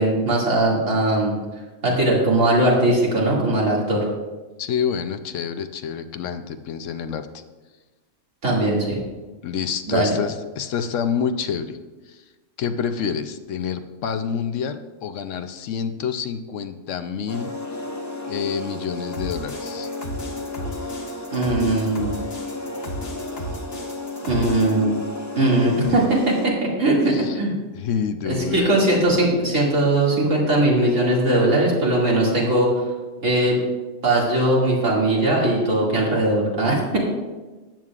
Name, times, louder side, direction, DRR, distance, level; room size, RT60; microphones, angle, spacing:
voice 1, 0.0-1.4 1.8-4.0 8.4-9.0 9.9-10.1 21.3-22.1 24.3-25.0 25.4-27.5 28.2-32.8 33.2-33.6 34.0-37.0, right 1 dB, 75° right, -5 dB, 2.8 m, -20 dB
voice 2, 4.6-7.4 9.4-11.8 12.1-12.2 12.6-17.5 18.3-19.9 27.1-27.4 27.7-28.7, left 7 dB, 70° left, 9 dB, 1.0 m, -28 dB
sound 1, 17.3-26.5, left 2 dB, 15° left, 0.6 m, -33 dB
sound 2, 19.1-24.7, equal, 50° left, 1.5 m, -34 dB
13.0 x 9.1 x 2.4 m, 1.2 s
omnidirectional pair, 1.4 m